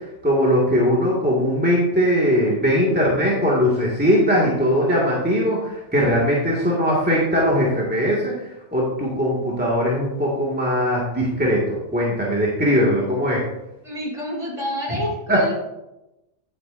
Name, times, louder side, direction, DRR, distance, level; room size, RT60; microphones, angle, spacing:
voice 1, 0.0-8.3 8.7-13.4 15.3-15.5, equal, 10° right, -5 dB, 1.9 m, -20 dB
voice 2, 13.8-15.5, equal, 35° right, -3 dB, 3.0 m, -28 dB
11.0 x 8.5 x 2.6 m, 0.93 s
omnidirectional pair, 1.2 m